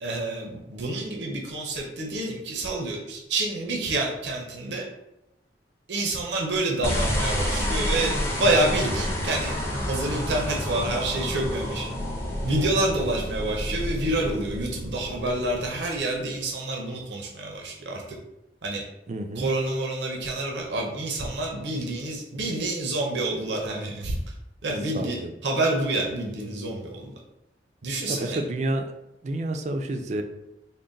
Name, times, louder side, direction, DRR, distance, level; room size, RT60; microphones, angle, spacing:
voice 1, 0.0-4.8 5.9-9.6 9.9-11.9 12.4-18.0 18.6-18.8 19.4-24.2 24.6-27.1 27.8-28.4, right 2 dB, 75° right, 0 dB, 0.6 m, -28 dB
sound 1, 6.8-16.2, left 1 dB, 15° left, 0.5 m, -29 dB
voice 2, 19.1-19.5 24.9-25.3 28.1-28.8 29.2-30.2, right 1 dB, 40° right, 6 dB, 0.3 m, -29 dB
3.8 x 2.1 x 3.8 m, 0.89 s
head